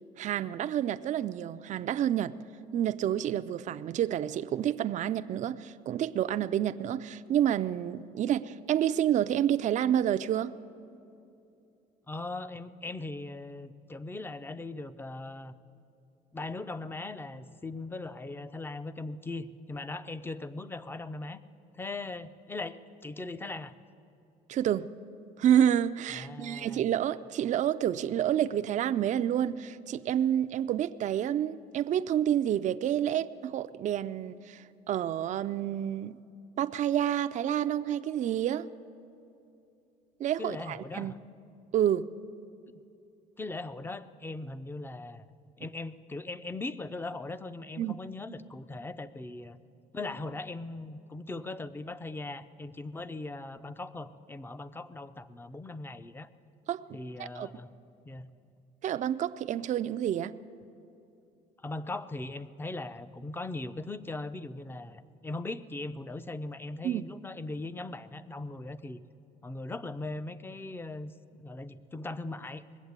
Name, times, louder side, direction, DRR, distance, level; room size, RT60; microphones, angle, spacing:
voice 1, 0.2-2.4 2.7-10.6 24.5-24.9 25.4-36.2 36.6-38.7 40.2-41.1 41.7-42.1 47.8-48.0 56.7-57.5 58.8-60.3 66.8-67.0, right 10 dB, 45° right, 12 dB, 0.4 m, -29 dB
voice 2, 12.1-15.5 16.3-21.4 21.7-23.7 26.1-26.8 40.4-41.2 43.4-45.3 45.6-49.6 49.9-56.3 56.9-57.7 58.0-58.3 61.6-69.0 69.4-72.7, left 2 dB, 15° left, 14 dB, 0.5 m, -39 dB
20.0 x 7.9 x 8.1 m, 2.7 s
cardioid pair, 110°, 17 cm